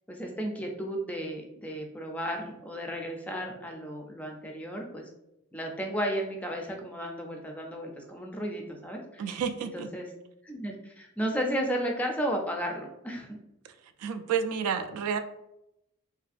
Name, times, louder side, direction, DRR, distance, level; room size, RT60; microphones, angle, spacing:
voice 1, 0.1-5.1 5.5-9.2 9.6-10.1 10.4-13.4, equal, 5° left, 1 dB, 0.3 m, -34 dB
voice 2, 9.2-9.9 14.0-15.2, right 6 dB, 85° right, 13 dB, 0.3 m, -30 dB
2.9 x 2.5 x 2.4 m, 0.84 s
head